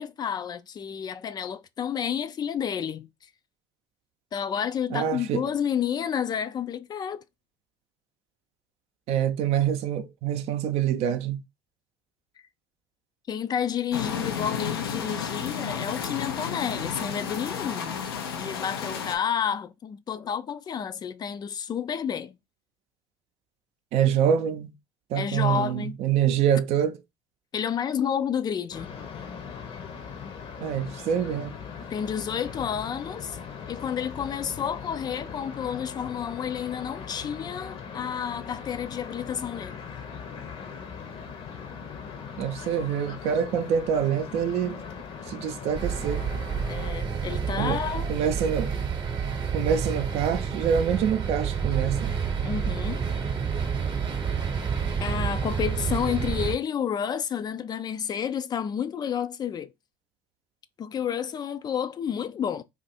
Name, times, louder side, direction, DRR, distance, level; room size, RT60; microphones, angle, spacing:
voice 1, 0.0-3.1 4.3-7.2 13.3-18.0 18.3-22.4 25.1-26.0 27.5-28.9 31.9-33.4 33.7-39.8 46.7-48.2 52.4-53.0 55.0-59.7 60.8-62.6, left 8 dB, 35° left, 0.3 m, -30 dB
voice 2, 4.9-5.4 9.1-11.4 23.9-24.7 25.1-27.0 30.6-31.5 42.4-44.8 45.3-46.2 47.6-47.8 48.1-48.7 49.5-52.2, right 8 dB, 60° right, 0.5 m, -25 dB
sound 1, 13.9-19.2, left 7 dB, 90° left, 0.5 m, -32 dB
sound 2, 28.7-46.9, left 6 dB, 50° left, 0.8 m, -40 dB
sound 3, 45.7-56.6, right 6 dB, 40° right, 0.9 m, -29 dB
2.6 x 2.4 x 4.0 m
hypercardioid pair, 65°, 12 cm